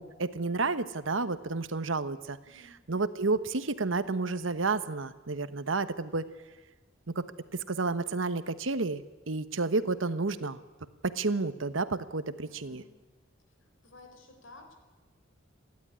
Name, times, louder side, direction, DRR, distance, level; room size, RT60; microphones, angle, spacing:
voice 1, 0.0-2.4 2.9-6.3 7.1-7.3 7.5-9.0 9.3-10.6 11.0-12.8, right 3 dB, 75° right, 13 dB, 1.1 m, -30 dB
voice 2, 2.5-2.8 12.3-13.0 13.6-14.7, left 2 dB, 75° left, 6 dB, 3.9 m, -54 dB
29.0 x 12.0 x 9.9 m, 1.2 s
head